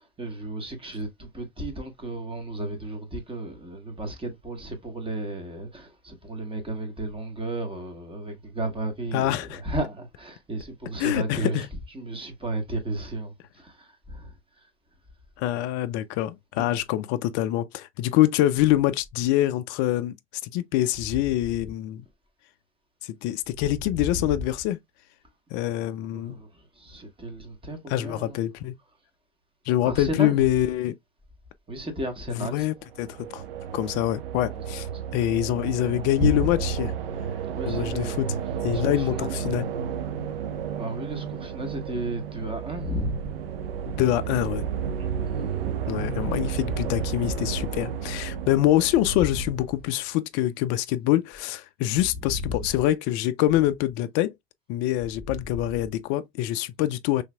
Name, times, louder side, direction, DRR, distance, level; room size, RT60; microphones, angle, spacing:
voice 1, 0.0-14.7 16.6-16.7 21.0-21.3 23.6-24.4 26.0-28.4 29.6-30.6 31.7-32.7 34.5-35.0 36.2-36.6 37.5-39.7 40.8-43.3 45.0-45.7 46.7-47.7 49.0-49.6 51.9-52.8 55.2-55.6, right 1 dB, 15° right, 1.5 m, -33 dB
voice 2, 9.1-9.6 11.0-11.7 15.4-20.2 20.4-22.0 23.0-24.8 25.5-26.4 27.9-28.8 29.7-31.0 32.4-33.4 33.7-36.9 37.7-38.3 38.6-39.7 44.0-44.7 45.9-54.3 54.7-57.2, left 14 dB, 35° left, 0.4 m, -25 dB
sound 1, 32.8-49.8, right 7 dB, 60° right, 0.8 m, -32 dB
5.5 x 3.3 x 2.3 m
figure-of-eight pair, 80°, 32 cm